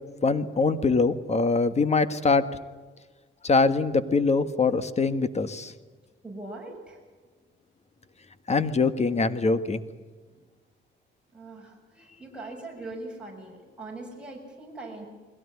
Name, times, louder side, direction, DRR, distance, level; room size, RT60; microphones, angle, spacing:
voice 1, 0.2-2.4 3.4-5.7 8.5-9.8, left 4 dB, 35° left, 12 dB, 1.7 m, -23 dB
voice 2, 6.2-7.0 10.3-10.4 11.3-15.0, right 2 dB, 5° right, -2 dB, 7.0 m, -41 dB
22.0 x 17.0 x 9.8 m, 1.4 s
cardioid pair, 90°, 20 cm